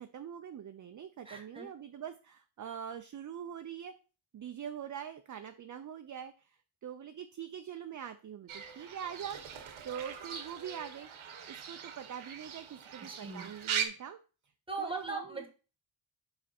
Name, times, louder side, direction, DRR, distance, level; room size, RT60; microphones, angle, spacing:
voice 1, 0.0-3.9 4.3-11.1 11.5-14.2 14.8-15.5, right 8 dB, 40° right, 8 dB, 0.5 m, -44 dB
voice 2, 1.2-1.7 13.0-13.5 14.7-15.5, right 3 dB, 10° right, 5 dB, 1.3 m, -39 dB
Fowl / Bird, 8.5-13.9, right 8 dB, 80° right, 1.1 m, -40 dB
5.2 x 5.1 x 4.2 m, 0.34 s
wide cardioid pair, 130°, 48 cm